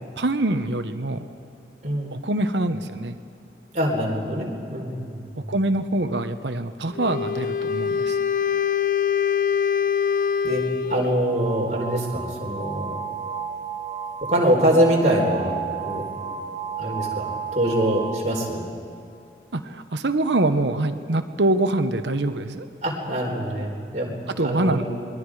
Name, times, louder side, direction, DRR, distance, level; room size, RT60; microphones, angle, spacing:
voice 1, 0.2-1.2 2.1-3.2 5.5-8.2 19.5-22.7 24.4-24.8, right 2 dB, 85° right, 9 dB, 1.1 m, -24 dB
voice 2, 3.7-5.5 10.4-10.6 10.9-13.0 14.3-15.5 15.9-16.1 16.8-17.3 17.5-18.6 22.8-24.8, equal, 40° right, -2 dB, 4.2 m, -24 dB
Wind instrument woodwind instrument, 6.9-11.3, left 7 dB, 50° left, 0.5 m, -24 dB
sound 1, 11.2-18.8, right 7 dB, 35° left, 3.5 m, -33 dB
27.5 x 22.0 x 5.0 m, 2.6 s
head